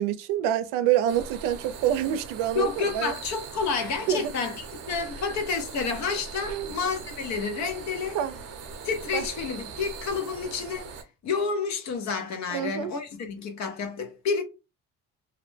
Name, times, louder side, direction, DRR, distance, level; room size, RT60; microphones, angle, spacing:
voice 1, 0.0-3.1 4.1-4.2 6.5-6.8 8.1-8.4 9.1-9.3 12.5-12.9, right 11 dB, 90° right, 0.5 m, -26 dB
sound 1, 1.1-11.0, right 5 dB, 50° right, 0.7 m, -41 dB
voice 2, 2.5-8.2 8.8-10.9 11.2-14.4, left 5 dB, 60° left, 0.8 m, -30 dB
2.6 x 2.1 x 3.2 m
cardioid pair, 100°, 32 cm